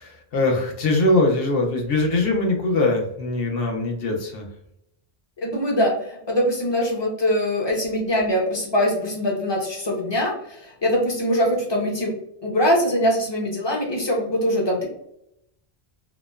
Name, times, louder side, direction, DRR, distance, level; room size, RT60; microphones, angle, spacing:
voice 1, 0.0-4.5, left 2 dB, 70° left, 1 dB, 0.9 m, -22 dB
voice 2, 5.4-12.1 12.4-14.8, equal, 30° left, -1 dB, 0.6 m, -22 dB
2.8 x 2.1 x 2.2 m, 0.77 s
omnidirectional pair, 1.0 m